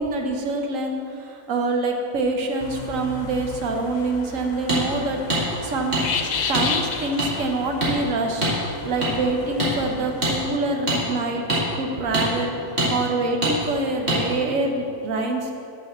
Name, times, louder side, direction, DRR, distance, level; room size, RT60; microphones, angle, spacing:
voice 1, 0.0-6.0 6.5-11.4 11.8-15.5, right 2 dB, 80° right, 3 dB, 1.3 m, -26 dB
sound 1, 2.6-10.6, left 5 dB, 60° left, 0.4 m, -33 dB
sound 2, 4.7-4.8 5.3-5.4 5.9-6.0 6.5-6.7 7.2-7.3 7.8-7.9 8.4-8.6 9.0-9.1 9.6-9.7 10.2-10.3 10.9-11.0 11.5-11.6 12.1-12.3 12.8-12.9 13.4-13.5 14.1-14.2, right 1 dB, 55° right, 2.5 m, -22 dB
6.5 x 6.0 x 7.1 m, 2.5 s
omnidirectional pair, 1.4 m